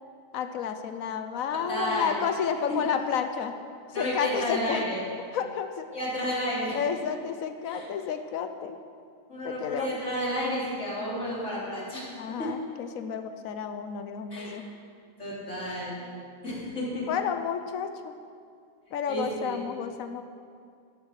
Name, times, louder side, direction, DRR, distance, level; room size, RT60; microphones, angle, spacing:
voice 1, 0.3-3.5 4.0-4.8 5.3-5.9 6.7-8.8 9.4-10.0 12.2-14.6 17.1-18.1 18.9-20.2, left 7 dB, 85° left, 7 dB, 1.2 m, -31 dB
voice 2, 1.7-2.2 2.7-2.8 3.9-5.0 5.9-6.8 7.6-7.9 9.3-12.1 12.4-12.5 14.3-14.6 15.2-16.0 16.4-17.1 19.1-19.6, equal, 60° left, -6 dB, 3.9 m, -31 dB
13.5 x 11.5 x 5.8 m, 2.3 s
omnidirectional pair, 1.4 m